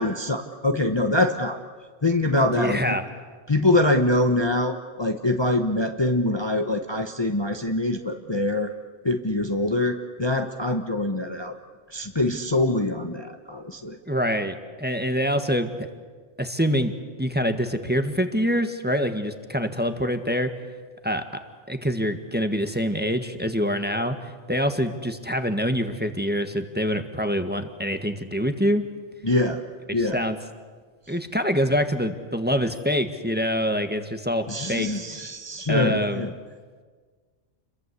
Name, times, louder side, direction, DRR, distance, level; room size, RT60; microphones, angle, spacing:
voice 1, 0.0-1.6 2.0-2.9 3.5-8.7 9.0-11.6 11.9-14.0 29.2-29.6 29.9-30.2 34.5-36.3, left 2 dB, 25° left, 5 dB, 1.1 m, -24 dB
voice 2, 2.6-3.0 14.1-15.7 16.4-16.9 17.2-20.5 21.0-21.2 21.7-28.8 30.0-30.4 31.1-34.9 35.7-36.2, equal, 10° right, 7 dB, 1.5 m, -25 dB
29.0 x 22.5 x 8.3 m, 1.5 s
omnidirectional pair, 1.2 m